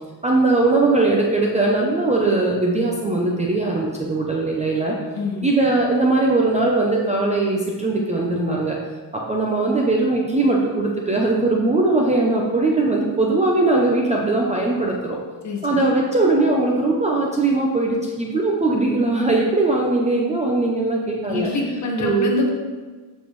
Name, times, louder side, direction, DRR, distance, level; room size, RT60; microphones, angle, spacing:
voice 1, 0.2-5.0 5.4-8.8 9.1-15.2 15.6-21.5 22.0-22.3, right 2 dB, 15° right, -2 dB, 0.5 m, -20 dB
voice 2, 5.1-5.5 15.4-15.9 21.3-22.5, left 2 dB, 40° left, 0 dB, 1.2 m, -25 dB
7.2 x 6.2 x 3.0 m, 1.4 s
cardioid pair, 170°, 43 cm